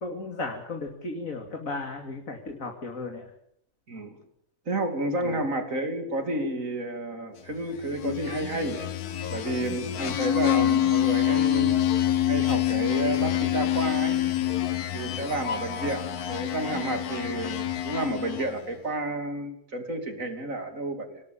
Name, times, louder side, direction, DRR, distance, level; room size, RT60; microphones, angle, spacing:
voice 1, 0.0-3.2, left 3 dB, 65° left, 3 dB, 2.9 m, -35 dB
voice 2, 4.7-8.9 9.3-11.8 12.3-14.2 14.9-16.0 16.3-21.2, right 2 dB, 60° right, 7 dB, 3.4 m, -31 dB
sound 1, 7.8-18.7, left 11 dB, 90° left, 1.6 m, -26 dB
26.5 x 18.5 x 7.4 m, 0.70 s
omnidirectional pair, 1.6 m